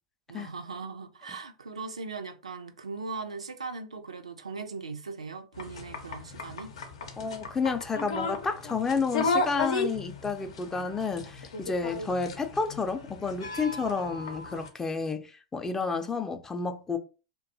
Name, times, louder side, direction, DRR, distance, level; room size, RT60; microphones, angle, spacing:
voice 1, 0.3-6.8, right 4 dB, 90° right, 0.4 m, -39 dB
sound 1, 5.6-14.7, left 3 dB, 70° left, 0.6 m, -34 dB
voice 2, 7.2-17.0, left 4 dB, 15° left, 0.4 m, -31 dB
2.6 x 2.2 x 2.6 m
hypercardioid pair, 95°, 3 cm